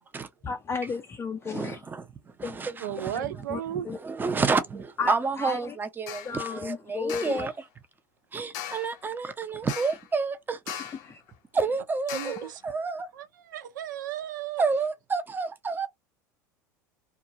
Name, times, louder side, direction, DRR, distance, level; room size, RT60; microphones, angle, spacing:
voice 1, 0.4-1.8 2.4-2.6 3.1-4.0 5.0-5.7 6.2-7.5 11.0-11.2, left 5 dB, 25° left, 0.4 m, -34 dB
voice 2, 1.4-2.1 2.4-3.4 3.7-7.5 8.3-10.6 11.5-13.1 14.6-15.9, right 4 dB, 20° right, 0.6 m, -29 dB
voice 3, 2.8-3.9 10.7-10.8 12.1-12.6 13.2-13.3 13.5-14.6, right 11 dB, 75° right, 0.5 m, -34 dB
sound 1, 6.1-6.4 7.1-7.5 8.5-9.0 9.7-10.1 10.7-11.1 12.1-12.5, left 10 dB, 60° left, 0.7 m, -38 dB
2.4 x 2.3 x 2.7 m
hypercardioid pair, 80°, 10 cm